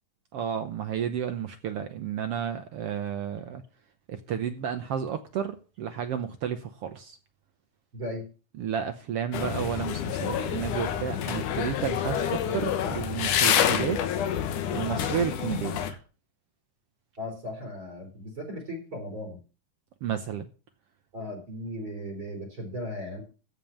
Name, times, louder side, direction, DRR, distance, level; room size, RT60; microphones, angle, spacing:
voice 1, 0.3-3.6 4.1-7.2 8.6-14.0 14.7-15.8 20.0-20.4, right 8 dB, 75° right, 1.4 m, -32 dB
voice 2, 7.9-8.3 15.9-16.0 17.2-19.4 21.1-23.2, left 1 dB, 35° right, 4.4 m, -37 dB
sound 1, 9.3-15.9, left 9 dB, 70° left, 2.6 m, -28 dB
14.5 x 5.3 x 7.2 m
omnidirectional pair, 3.8 m